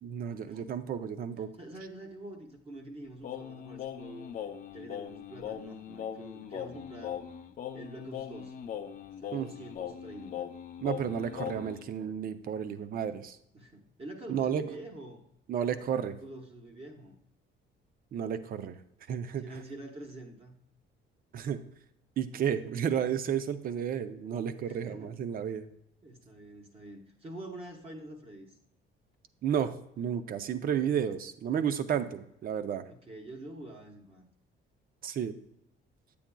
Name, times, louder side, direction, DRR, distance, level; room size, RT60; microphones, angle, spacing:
voice 1, 0.0-1.5 9.3-9.5 10.8-13.4 14.3-14.7 15.5-16.2 18.1-18.8 19.1-19.6 21.3-21.6 22.2-25.7 29.4-32.8 35.0-35.4, right 8 dB, 45° right, 12 dB, 0.5 m, -32 dB
voice 2, 1.6-4.3 4.7-7.2 7.7-8.5 9.2-10.5 13.5-15.2 16.1-17.2 19.4-20.6 24.6-25.2 26.0-28.6 32.9-34.3, right 1 dB, 30° right, 1 dB, 1.0 m, -46 dB
Singing, 3.2-11.8, left 9 dB, 40° left, 0.6 m, -40 dB
9.0 x 8.5 x 2.2 m, 0.78 s
cardioid pair, 170°, 21 cm